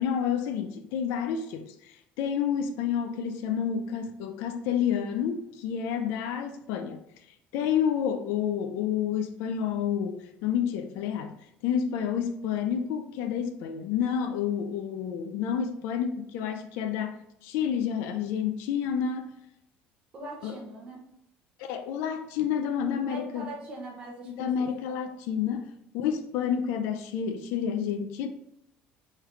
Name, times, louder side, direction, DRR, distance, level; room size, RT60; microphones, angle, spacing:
voice 1, 0.0-7.0 7.5-11.4 11.6-19.3 20.4-20.5 21.6-23.5 24.3-28.3, left 8 dB, 75° left, 0.4 m, -29 dB
voice 2, 20.1-21.1 22.9-24.5 24.9-25.1, right 1 dB, 25° right, 0.9 m, -41 dB
3.6 x 3.2 x 3.2 m
cardioid pair, 175°, 4 cm